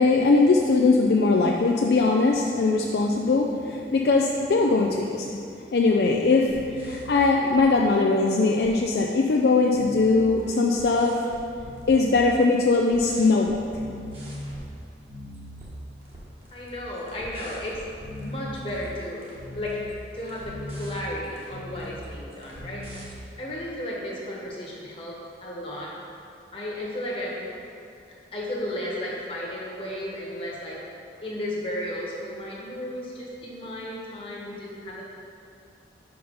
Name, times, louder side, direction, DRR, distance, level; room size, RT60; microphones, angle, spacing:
voice 1, 0.0-5.3 5.7-6.5 6.8-11.2 11.9-13.6, left 3 dB, 55° left, 0 dB, 0.4 m, -21 dB
sound 1, 6.4-8.1 8.4-9.0 9.3-12.6 12.9-14.7 15.0-15.7 16.0-23.2, equal, 30° right, 1.2 m, -40 dB
voice 2, 16.5-17.8 18.2-19.2 19.5-19.8 20.1-22.9 23.4-26.0 26.5-27.4 28.3-30.8 31.2-35.0, left 1 dB, 30° left, -4 dB, 1.2 m, -34 dB
5.7 x 5.0 x 5.4 m, 2.5 s
head